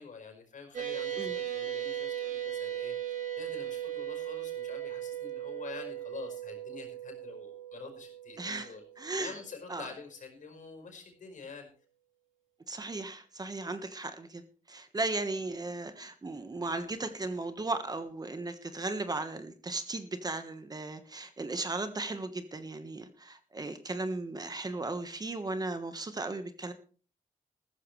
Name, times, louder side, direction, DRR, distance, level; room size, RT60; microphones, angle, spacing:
voice 1, 0.0-2.9 3.4-8.8 9.2-11.7, left 5 dB, 65° left, 5 dB, 5.0 m, -47 dB
sound 1, 0.7-9.4, right 11 dB, 65° right, 4.3 m, -38 dB
voice 2, 8.4-8.7 9.0-9.3 9.7-9.9 12.7-14.4 14.7-26.7, right 2 dB, 25° right, 9 dB, 1.4 m, -36 dB
14.5 x 14.0 x 3.3 m, 0.40 s
wide cardioid pair, 115°, 14 cm